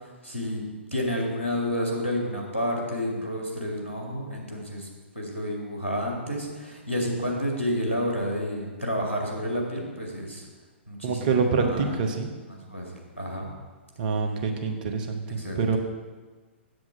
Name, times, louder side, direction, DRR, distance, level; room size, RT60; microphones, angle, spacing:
voice 1, 0.2-0.6 0.9-4.9 5.2-10.4 10.9-11.9 12.5-13.5 15.4-15.8, equal, 85° left, -1 dB, 2.0 m, -30 dB
voice 2, 11.0-12.3 14.0-15.8, right 5 dB, 45° right, 5 dB, 1.0 m, -26 dB
7.9 x 7.4 x 4.8 m, 1.3 s
figure-of-eight pair, 115°, 7 cm